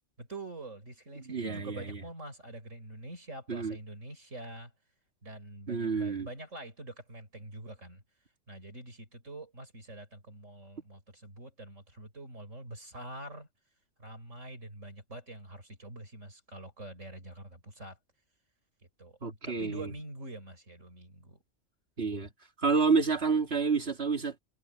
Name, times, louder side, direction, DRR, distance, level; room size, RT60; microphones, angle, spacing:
voice 1, 0.2-4.7 5.2-8.0 8.5-13.5 14.0-18.0 19.0-21.4, right 2 dB, 85° right, 6.6 m, -45 dB
voice 2, 1.2-2.0 3.5-3.8 5.7-6.3 19.2-19.9 22.0-22.3 22.6-24.4, right 4 dB, 55° right, 2.7 m, -29 dB
omnidirectional pair, 1.3 m